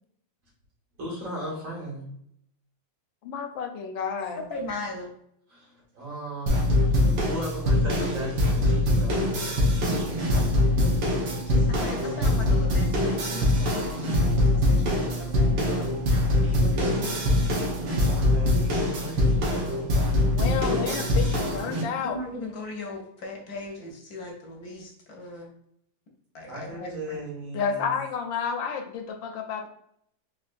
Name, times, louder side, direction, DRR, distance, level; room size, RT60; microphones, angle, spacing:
voice 1, 1.0-2.1 5.5-6.7 7.3-9.3 16.6-17.0 18.2-19.7 20.6-21.4 26.5-27.9, right 1 dB, 85° right, -5 dB, 2.3 m, -36 dB
voice 2, 3.2-4.4 20.3-22.2 27.5-29.7, left 6 dB, 85° left, 5 dB, 1.4 m, -31 dB
voice 3, 4.5-5.1 10.4-15.9 16.4-16.9 22.0-25.5 26.3-27.2, left 2 dB, 65° left, 0 dB, 1.0 m, -39 dB
sound 1, 6.5-21.8, left 1 dB, 65° right, 1.4 m, -23 dB
4.5 x 2.7 x 2.4 m, 0.73 s
omnidirectional pair, 2.0 m